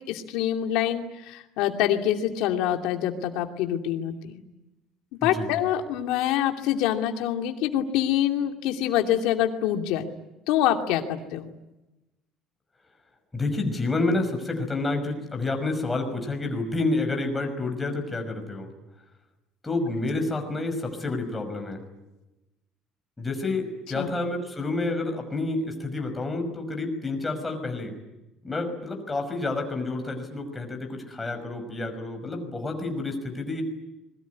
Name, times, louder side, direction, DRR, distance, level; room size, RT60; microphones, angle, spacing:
voice 1, 0.1-4.4 5.2-10.1 10.5-11.5 23.9-24.1, left 11 dB, 85° left, 4 dB, 2.6 m, -25 dB
voice 2, 13.3-18.7 19.6-21.8 23.2-27.9 28.4-33.6, left 2 dB, 10° left, 4 dB, 5.7 m, -29 dB
27.0 x 22.5 x 9.6 m, 1.0 s
cardioid pair, 155°, 0 cm